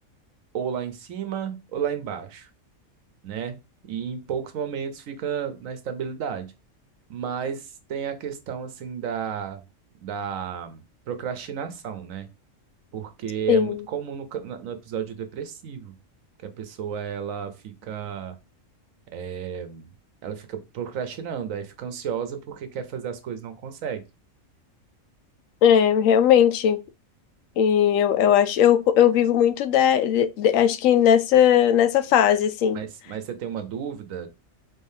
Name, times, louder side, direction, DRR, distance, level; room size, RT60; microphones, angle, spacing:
voice 1, 0.5-2.5 3.2-3.6 3.8-6.5 7.1-9.6 10.0-12.3 12.9-16.0 16.4-18.4 19.1-19.9 20.2-24.0 32.7-34.3, right 8 dB, 80° right, 1.2 m, -32 dB
voice 2, 25.6-26.8 27.6-32.8, left 9 dB, 80° left, 1.0 m, -18 dB
3.9 x 3.6 x 2.7 m
omnidirectional pair, 1.4 m